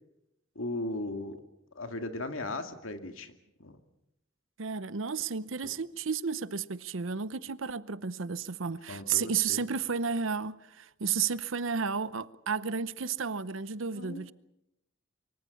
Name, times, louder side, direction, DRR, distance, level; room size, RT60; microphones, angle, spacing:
voice 1, 0.6-1.4 1.8-3.3 3.6-3.8 5.6-5.7 8.9-9.7 13.9-14.2, left 2 dB, 85° left, 2.3 m, -37 dB
voice 2, 4.6-14.3, right 6 dB, 80° right, 0.8 m, -32 dB
24.5 x 23.0 x 7.1 m
head